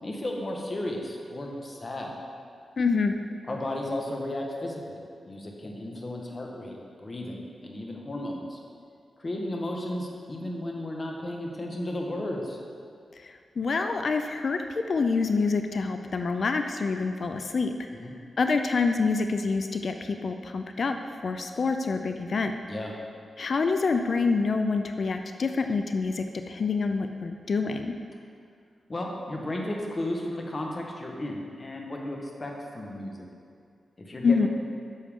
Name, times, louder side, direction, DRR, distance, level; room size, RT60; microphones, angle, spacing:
voice 1, 0.0-2.1 3.5-5.0 5.2-8.6 9.2-12.6 17.9-18.1 22.6-22.9 28.9-33.3 34.0-34.5, left 1 dB, 35° left, 0 dB, 1.3 m, -34 dB
voice 2, 2.8-3.1 13.2-14.6 14.9-17.7 18.4-21.0 21.2-22.5 23.4-27.9 34.2-34.5, left 4 dB, 55° left, 6 dB, 0.4 m, -26 dB
9.9 x 6.8 x 3.6 m, 2.3 s
wide cardioid pair, 90°, 0 cm